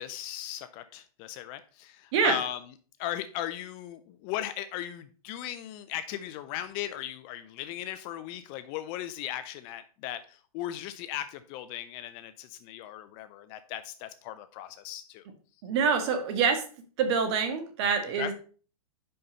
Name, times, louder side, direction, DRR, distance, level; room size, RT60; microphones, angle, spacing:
voice 1, 0.0-2.6 3.0-15.3 18.2-18.3, left 12 dB, 25° left, 11 dB, 0.3 m, -37 dB
voice 2, 15.6-16.6 17.0-18.3, right 6 dB, 45° right, 7 dB, 1.7 m, -26 dB
5.5 x 5.4 x 5.2 m, 0.39 s
hypercardioid pair, 145°, 19 cm